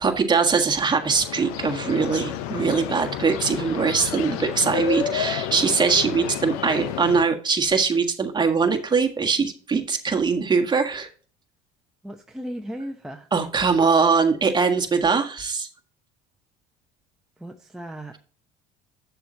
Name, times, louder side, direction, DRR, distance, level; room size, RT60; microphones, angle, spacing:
voice 1, 0.0-11.1 13.3-15.7, right 5 dB, 25° right, 5 dB, 1.5 m, -22 dB
sound 1, 0.8-7.2, left 10 dB, 80° left, 0.9 m, -30 dB
voice 2, 12.0-13.3 17.4-18.2, equal, 5° right, 2 dB, 0.8 m, -36 dB
7.9 x 6.8 x 2.8 m, 0.42 s
supercardioid pair, 85°, 19 cm